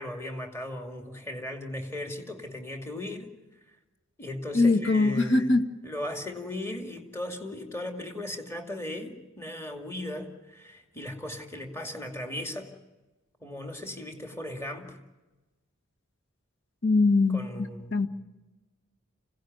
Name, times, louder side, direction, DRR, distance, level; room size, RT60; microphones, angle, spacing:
voice 1, 0.0-3.3 4.2-12.7 13.4-15.0 17.3-18.0, left 1 dB, 15° left, 4 dB, 2.3 m, -37 dB
voice 2, 4.5-5.6 16.8-18.1, left 3 dB, 60° left, 6 dB, 1.7 m, -22 dB
26.5 x 17.0 x 9.4 m, 1.1 s
head